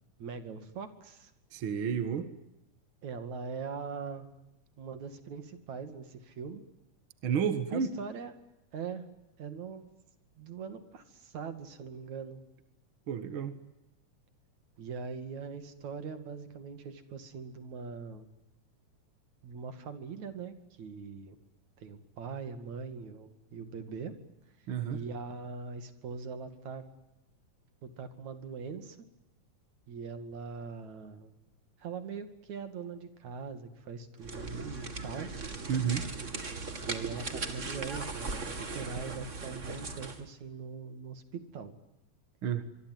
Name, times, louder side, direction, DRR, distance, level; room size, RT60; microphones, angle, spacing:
voice 1, 0.2-1.3 3.0-4.3 4.8-6.6 7.7-8.3 8.7-9.1 9.4-9.9 10.4-12.4 14.8-18.3 19.4-21.4 21.8-24.1 24.9-26.9 27.8-29.1 29.9-31.3 31.8-35.3 36.9-41.7, right 5 dB, 65° right, 9 dB, 3.6 m, -41 dB
voice 2, 1.5-2.3 7.2-7.9 13.1-13.6 24.7-25.0 35.7-36.1 42.4-42.7, right 7 dB, 45° right, 10 dB, 2.1 m, -31 dB
sound 1, 34.2-40.3, right 3 dB, 25° right, 2.2 m, -38 dB
25.5 x 24.0 x 9.5 m, 0.90 s
omnidirectional pair, 3.6 m